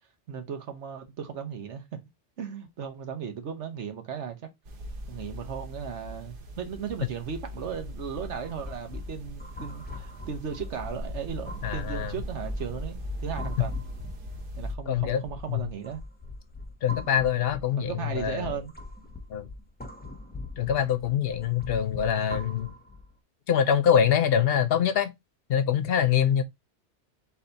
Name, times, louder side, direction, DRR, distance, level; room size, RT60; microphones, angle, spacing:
voice 1, 0.3-2.0 2.4-4.4 5.1-13.8 14.6-16.0 17.8-18.7, right 7 dB, 80° right, 1.2 m, -36 dB
sound 1, 4.7-14.8, equal, 55° right, 0.9 m, -39 dB
sound 2, 8.4-23.1, left 2 dB, 10° left, 0.5 m, -42 dB
voice 2, 11.6-12.1 14.9-15.2 15.5-15.7 16.8-18.6 19.3-19.5 20.6-22.7 23.5-25.1 25.5-26.4, left 8 dB, 65° left, 0.7 m, -24 dB
4.0 x 2.7 x 3.9 m
omnidirectional pair, 1.2 m